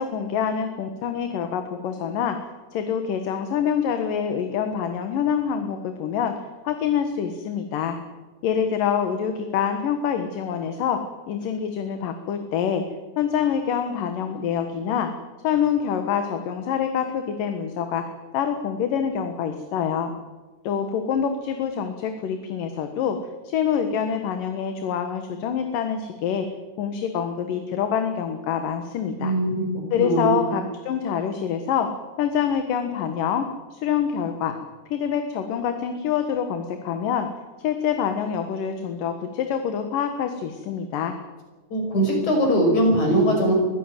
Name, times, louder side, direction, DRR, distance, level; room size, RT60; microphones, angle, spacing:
voice 1, 0.0-2.4 2.7-6.3 6.6-8.0 8.4-12.8 13.2-15.1 15.4-18.0 18.3-20.1 20.6-23.2 23.4-26.5 26.8-29.3 29.9-31.9 32.2-34.6 34.9-37.3 37.6-41.2, left 8 dB, 80° left, 7 dB, 3.0 m, -26 dB
voice 2, 29.2-29.6 30.0-30.4 41.7-43.5, right 1 dB, 60° left, 2 dB, 6.9 m, -20 dB
23.5 x 15.5 x 9.1 m, 1.2 s
omnidirectional pair, 3.8 m